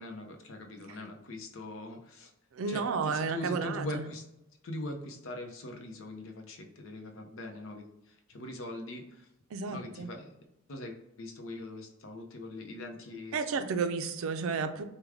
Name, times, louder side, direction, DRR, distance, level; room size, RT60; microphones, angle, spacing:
voice 1, 0.0-2.3 2.7-4.2 4.6-9.3 9.7-10.3 10.7-13.5, left 1 dB, 70° left, 4 dB, 0.6 m, -42 dB
voice 2, 2.5-4.0 9.5-10.1 13.3-14.8, right 5 dB, 80° right, 8 dB, 0.4 m, -32 dB
4.7 x 2.2 x 3.5 m, 0.89 s
head